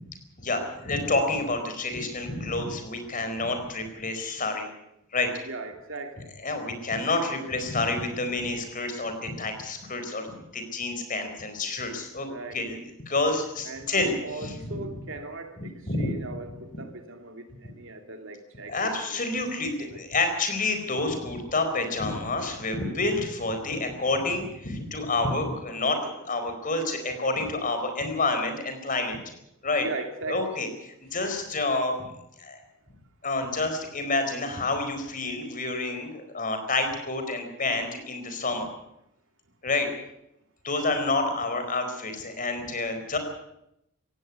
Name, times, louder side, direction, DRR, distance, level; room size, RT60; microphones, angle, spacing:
voice 1, 0.4-4.7 5.1-5.3 6.4-12.8 13.1-14.7 15.9-16.6 18.7-29.2 29.6-29.9 30.3-32.0 32.4-32.6 33.2-38.7 39.6-39.9 40.6-43.2, left 2 dB, 40° left, 7 dB, 4.4 m, -29 dB
voice 2, 5.5-6.3 12.3-12.8 13.7-18.9 19.9-20.0 22.8-23.0 29.8-30.5, right 2 dB, 60° right, 6 dB, 2.7 m, -39 dB
18.5 x 16.0 x 9.6 m, 0.82 s
head